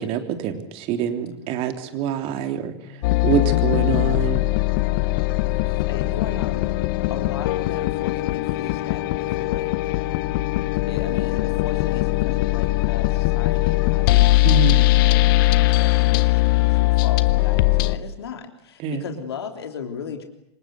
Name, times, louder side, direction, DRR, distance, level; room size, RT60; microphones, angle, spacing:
voice 1, 0.0-3.0 3.2-4.4 14.4-14.8 18.8-19.1, right 8 dB, 45° right, 6 dB, 3.4 m, -25 dB
voice 2, 1.9-3.4 5.4-10.2 10.7-20.2, left 6 dB, 70° left, 4 dB, 3.3 m, -37 dB
sound 1, 3.0-18.0, left 19 dB, 50° left, 1.1 m, -20 dB
27.5 x 25.5 x 8.0 m, 0.78 s
figure-of-eight pair, 85°, 14 cm